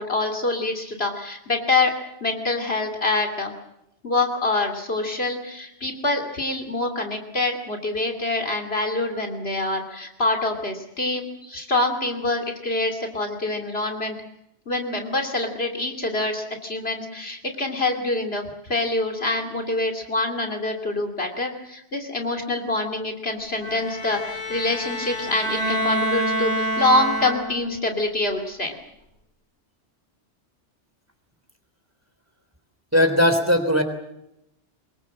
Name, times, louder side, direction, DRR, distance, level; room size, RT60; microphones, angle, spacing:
voice 1, 0.0-1.9 2.2-3.5 4.0-14.2 14.7-28.7, left 2 dB, 55° left, 3 dB, 3.1 m, -25 dB
Bowed string instrument, 23.6-27.8, right 1 dB, 90° left, 7.3 m, -27 dB
voice 2, 32.9-33.8, left 1 dB, 10° right, 7 dB, 3.4 m, -18 dB
24.0 x 22.0 x 7.6 m, 0.82 s
omnidirectional pair, 1.2 m